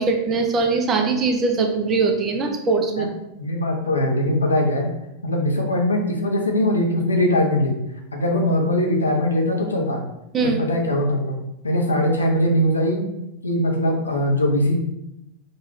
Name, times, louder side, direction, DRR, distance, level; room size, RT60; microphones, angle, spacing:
voice 1, 0.0-3.1 10.3-10.6, right 4 dB, 25° right, 4 dB, 0.6 m, -21 dB
voice 2, 3.4-4.9 5.2-7.8 8.1-10.0 10.4-11.4 11.6-13.0 13.4-14.7, left 1 dB, 80° left, 1 dB, 0.7 m, -21 dB
5.2 x 2.4 x 3.0 m, 0.88 s
figure-of-eight pair, 90°, 0 cm